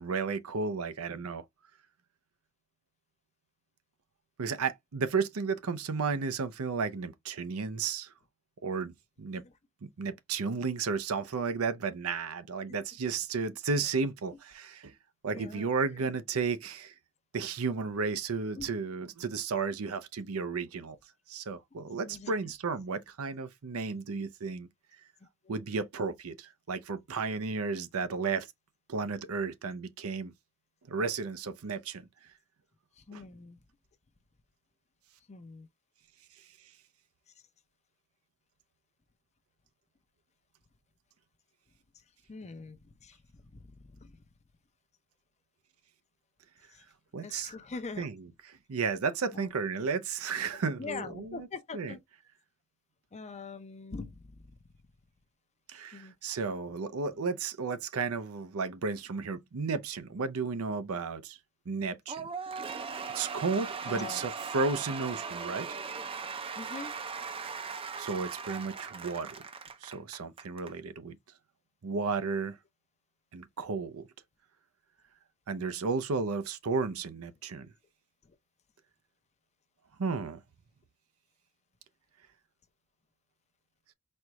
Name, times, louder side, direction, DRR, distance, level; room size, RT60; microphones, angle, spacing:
voice 1, 0.0-1.4 4.4-8.1 8.6-9.4 9.8-14.9 15.2-16.9 17.3-21.0 21.3-24.7 25.5-28.5 28.9-30.3 30.9-32.1 33.1-33.2 47.1-47.5 48.0-51.5 51.7-51.9 55.7-61.4 61.7-62.3 63.1-65.7 67.4-67.6 68.0-69.4 69.8-71.2 71.8-72.6 73.3-74.1 75.5-77.7 80.0-80.4, right 4 dB, 90° right, 0.6 m, -33 dB
voice 2, 15.3-15.6 18.6-18.7 22.1-22.4 25.4-25.6 33.0-33.6 35.3-35.7 42.3-43.2 43.5-43.6 44.0-44.1 46.7-46.8 47.2-48.1 49.3-49.5 50.8-52.0 53.1-54.2 55.9-56.1 63.9-64.2 66.6-66.9 75.6-75.8, left 4 dB, 30° left, 0.6 m, -43 dB
Cheering / Applause / Crowd, 62.1-70.7, right 5 dB, 25° right, 0.4 m, -39 dB
4.3 x 2.3 x 3.0 m
head